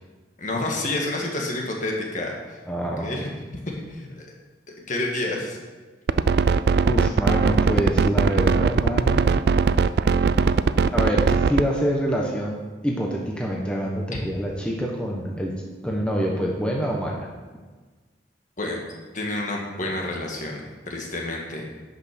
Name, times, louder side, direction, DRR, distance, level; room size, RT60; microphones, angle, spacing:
voice 1, 0.4-2.6 3.0-3.3 3.9-4.3 4.9-5.6 14.1-14.2 18.6-18.8 19.1-21.6, left 2 dB, 45° left, 0 dB, 1.8 m, -29 dB
voice 2, 2.7-3.3 6.9-9.3 10.9-15.6 15.8-17.3, equal, 5° left, -2 dB, 1.0 m, -26 dB
sound 1, 6.1-11.7, right 5 dB, 60° right, 0.4 m, -19 dB
10.5 x 5.8 x 6.0 m, 1.3 s
head